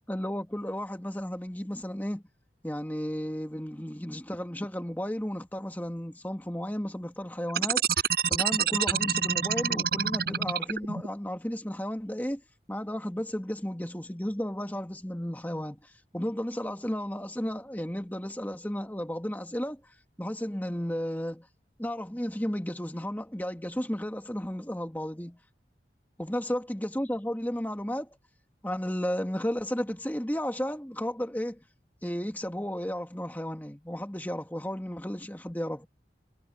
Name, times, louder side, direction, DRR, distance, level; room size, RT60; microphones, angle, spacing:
voice 1, 0.1-2.2 2.6-7.9 8.3-12.4 12.7-19.8 20.2-21.5 21.8-25.4 26.2-28.1 28.6-31.6 32.0-35.9, equal, 10° left, 1.9 m, -33 dB
sound 1, 7.5-11.1, right 8 dB, 60° right, 4.4 m, -27 dB
head